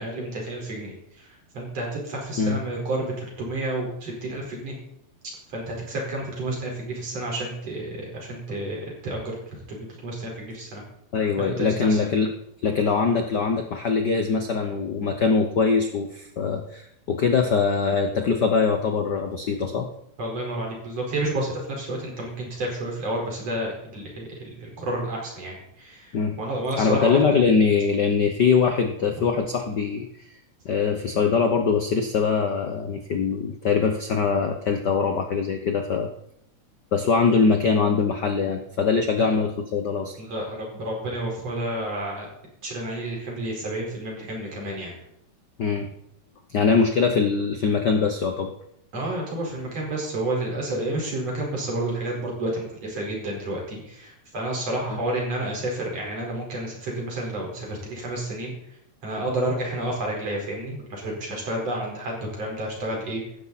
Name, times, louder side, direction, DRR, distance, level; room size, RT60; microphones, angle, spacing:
voice 1, 0.0-4.7 5.5-9.4 9.7-10.8 11.4-12.0 20.2-27.2 39.2-39.3 40.2-42.3 42.6-44.9 48.9-58.5 59.0-63.2, right 1 dB, 55° right, -1 dB, 5.7 m, -30 dB
voice 2, 11.1-12.3 12.6-19.9 26.1-26.4 26.8-30.1 30.6-36.1 36.9-40.1 45.6-45.9 46.5-48.5, left 5 dB, 65° left, 5 dB, 1.0 m, -22 dB
16.5 x 13.5 x 4.2 m, 0.76 s
omnidirectional pair, 3.4 m